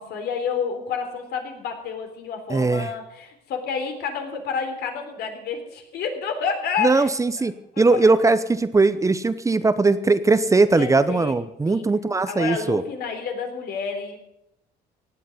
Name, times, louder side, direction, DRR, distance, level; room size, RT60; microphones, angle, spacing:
voice 1, 0.0-7.1 7.4-7.5 7.7-8.1 10.7-11.3 11.7-11.8 12.3-14.2, left 6 dB, 75° left, 5 dB, 3.7 m, -29 dB
voice 2, 2.5-2.9 6.8-12.8, right 3 dB, 20° right, 13 dB, 0.8 m, -20 dB
17.0 x 9.3 x 7.9 m, 0.83 s
cardioid pair, 110°, 17 cm